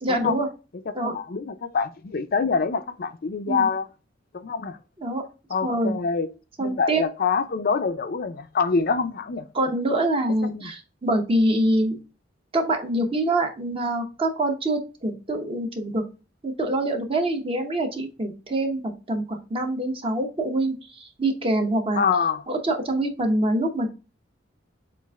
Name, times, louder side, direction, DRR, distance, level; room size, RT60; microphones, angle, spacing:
voice 1, 0.0-0.5 0.9-1.1 3.5-3.7 5.0-5.2 5.6-6.0 6.6-7.0 9.5-12.0 12.5-16.0 16.4-22.0 22.5-23.9, right 1 dB, 30° right, 0.9 m, -25 dB
voice 2, 0.9-3.9 4.3-4.8 5.5-6.3 6.6-9.4 10.4-10.7 22.0-22.4, left 5 dB, 50° left, 0.5 m, -25 dB
7.1 x 2.5 x 2.3 m
head